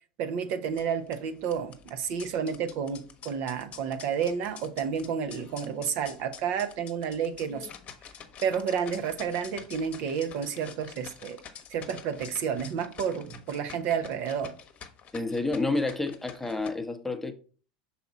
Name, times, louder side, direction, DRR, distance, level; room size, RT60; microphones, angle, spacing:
voice 1, 0.2-7.7 8.4-11.4 11.7-14.5, right 7 dB, 60° right, 0.8 m, -31 dB
sound 1, 0.6-16.7, left 8 dB, 40° left, 1.0 m, -48 dB
voice 2, 15.1-17.3, left 2 dB, 5° left, 0.9 m, -29 dB
5.9 x 4.2 x 4.0 m
hypercardioid pair, 100°, 4 cm